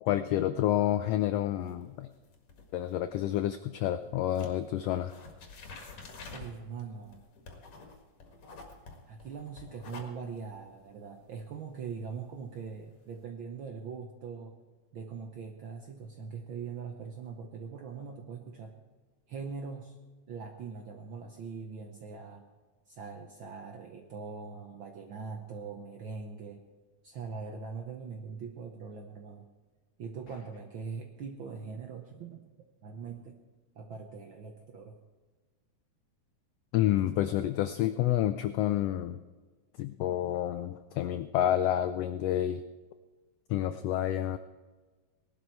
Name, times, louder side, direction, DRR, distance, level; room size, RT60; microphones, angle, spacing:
voice 1, 0.0-2.1 2.7-5.1 36.7-39.2 39.8-42.6 43.5-44.4, left 12 dB, 90° left, 11 dB, 1.4 m, -29 dB
sound 1, 1.5-4.0 4.3-13.2, left 3 dB, 60° left, 2.9 m, -50 dB
voice 2, 6.3-7.2 9.1-14.6 14.9-18.7 19.3-20.0 20.3-22.4 22.9-26.6 27.0-29.5 30.0-32.5 32.8-33.4 33.7-35.0, right 5 dB, 70° right, 4 dB, 1.2 m, -42 dB
19.0 x 11.5 x 4.6 m, 1.3 s
omnidirectional pair, 3.4 m